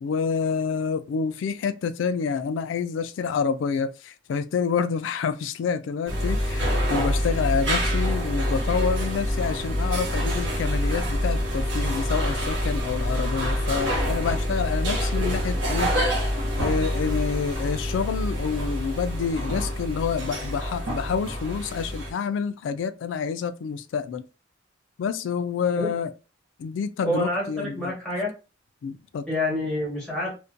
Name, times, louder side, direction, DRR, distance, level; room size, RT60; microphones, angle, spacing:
voice 1, 0.0-15.9 16.6-24.2 25.0-26.1 26.6-27.9 28.8-29.2, left 6 dB, 85° left, 0.3 m, -28 dB
sound 1, 6.1-22.1, equal, 75° right, 0.9 m, -26 dB
sound 2, 10.0-15.4, equal, 40° left, 0.7 m, -41 dB
voice 2, 27.0-28.3 29.3-30.3, left 1 dB, 5° left, 1.3 m, -27 dB
2.5 x 2.1 x 2.5 m
head